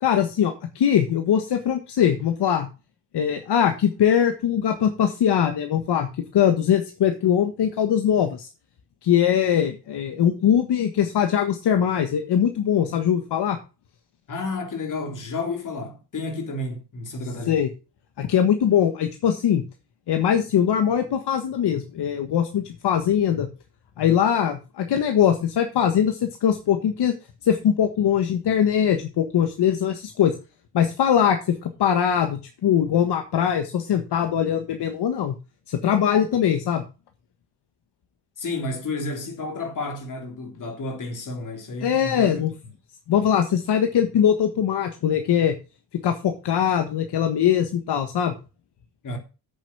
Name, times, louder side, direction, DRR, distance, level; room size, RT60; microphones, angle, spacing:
voice 1, 0.0-2.7 3.1-8.5 9.0-13.6 17.5-17.7 18.2-19.6 20.1-23.5 24.0-27.1 27.4-30.3 30.7-35.3 35.7-36.8 41.8-42.5 43.1-45.6 46.0-48.3, left 9 dB, 70° left, 1.5 m, -21 dB
voice 2, 14.3-17.7 38.4-42.4 49.0-49.2, left 2 dB, 45° left, 3.4 m, -31 dB
8.6 x 7.3 x 5.9 m
wide cardioid pair, 145°, 42 cm